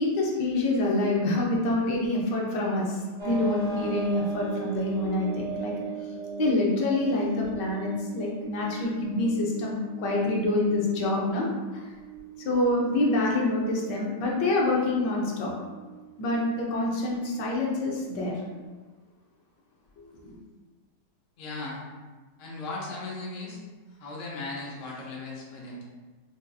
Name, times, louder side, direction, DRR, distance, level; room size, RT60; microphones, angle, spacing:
voice 1, 0.0-5.7 6.4-11.5 11.7-11.9 12.4-15.5 16.2-18.4 20.2-20.4, left 2 dB, 80° left, -2 dB, 1.3 m, -26 dB
sound 1, 3.2-18.6, right 6 dB, 40° right, 0.6 m, -40 dB
voice 2, 21.4-21.8 22.4-23.6 23.9-25.8, left 2 dB, 55° left, -4 dB, 1.0 m, -37 dB
5.4 x 2.5 x 2.3 m, 1.3 s
omnidirectional pair, 1.9 m